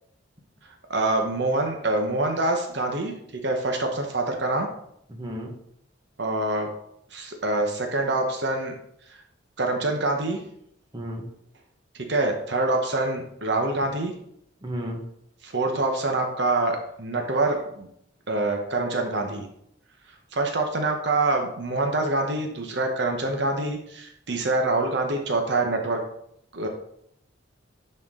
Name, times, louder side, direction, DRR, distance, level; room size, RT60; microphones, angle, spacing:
voice 1, 0.9-3.1 3.4-4.7 6.2-6.7 7.1-8.7 9.6-10.4 11.9-14.1 15.4-17.9 18.3-19.5 20.3-26.0 26.5-26.7, right 2 dB, 60° right, 3 dB, 0.9 m, -25 dB
voice 2, 5.1-5.5 10.9-11.3 14.6-15.0, equal, 25° right, 1 dB, 1.2 m, -33 dB
10.5 x 4.4 x 3.7 m, 0.74 s
head